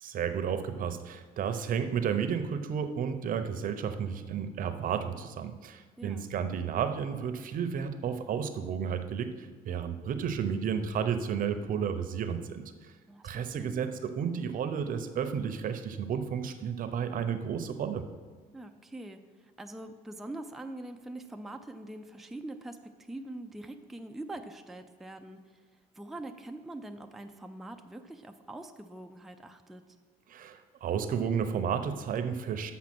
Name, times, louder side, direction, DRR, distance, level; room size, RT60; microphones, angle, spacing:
voice 1, 0.0-12.9 13.2-18.0 30.3-32.7, right 7 dB, 55° right, 9 dB, 0.7 m, -32 dB
voice 2, 6.0-6.3 13.1-13.8 18.5-30.0, right 1 dB, ahead, 5 dB, 0.4 m, -44 dB
7.3 x 5.8 x 6.0 m, 1.4 s
cardioid pair, 110°, 17 cm